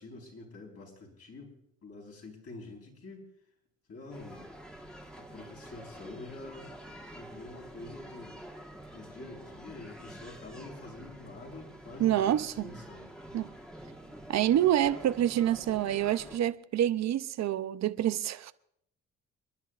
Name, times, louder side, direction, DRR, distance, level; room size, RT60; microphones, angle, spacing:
voice 1, 0.0-1.6 1.8-3.3 3.9-4.4 5.2-6.7 7.1-8.4 8.9-13.1, left 2 dB, 50° left, 4.4 m, -47 dB
sound 1, 4.1-16.4, right 1 dB, 5° left, 1.6 m, -48 dB
voice 2, 12.0-12.7 13.3-13.5 14.3-18.5, right 11 dB, 60° right, 0.7 m, -27 dB
29.5 x 11.0 x 2.5 m
cardioid pair, 90°, 30 cm